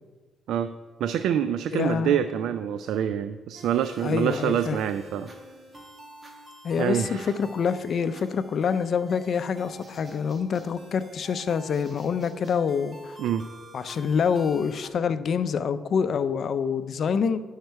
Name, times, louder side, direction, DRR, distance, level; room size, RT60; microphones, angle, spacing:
voice 1, 1.0-5.3 6.8-7.3 13.2-13.4, right 9 dB, 80° right, 11 dB, 0.3 m, -26 dB
voice 2, 1.7-2.2 4.0-4.8 6.6-13.2 13.7-17.4, left 6 dB, 55° left, 13 dB, 0.5 m, -26 dB
sound 1, 3.5-14.9, right 1 dB, 35° right, 1.5 m, -47 dB
10.5 x 6.5 x 4.6 m, 1.4 s
cardioid pair, 90°, 0 cm